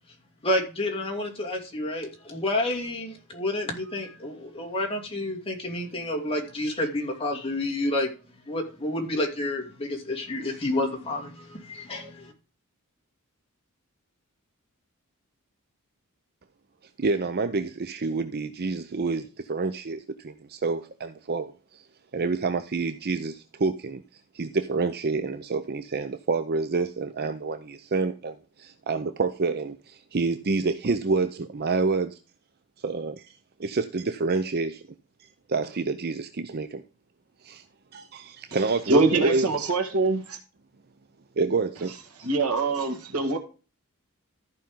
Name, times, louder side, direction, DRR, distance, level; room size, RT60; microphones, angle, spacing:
voice 1, 0.4-8.1 8.5-12.3, left 1 dB, 25° left, 2.6 m, -29 dB
voice 2, 17.0-21.8 22.1-32.2 32.8-33.3 33.6-34.9 35.2-36.8 37.4-37.6 37.9-39.5 41.4-41.9, right 3 dB, 45° right, 0.6 m, -28 dB
voice 3, 38.9-40.4 42.2-43.4, right 3 dB, 75° right, 2.1 m, -23 dB
14.0 x 5.4 x 3.7 m
head